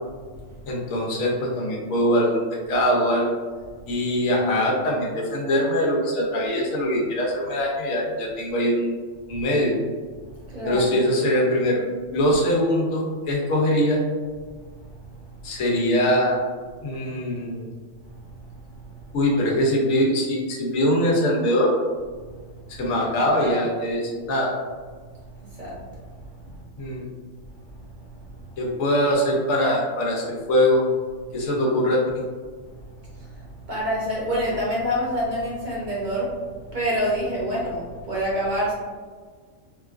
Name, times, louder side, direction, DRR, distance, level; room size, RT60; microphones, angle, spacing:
voice 1, 0.7-2.4 2.7-3.3 3.9-9.0 9.3-9.7 10.6-11.8 12.1-14.0 15.4-16.4 16.8-17.7 19.1-21.8 22.7-24.5 26.8-27.1 28.6-30.8 31.3-32.0, equal, 85° left, -2 dB, 1.2 m, -22 dB
voice 2, 10.5-10.8 23.3-23.6 25.6-25.8 33.7-36.3 36.7-38.7, equal, 45° right, -6 dB, 0.8 m, -26 dB
3.8 x 2.3 x 2.4 m, 1.5 s
omnidirectional pair, 1.4 m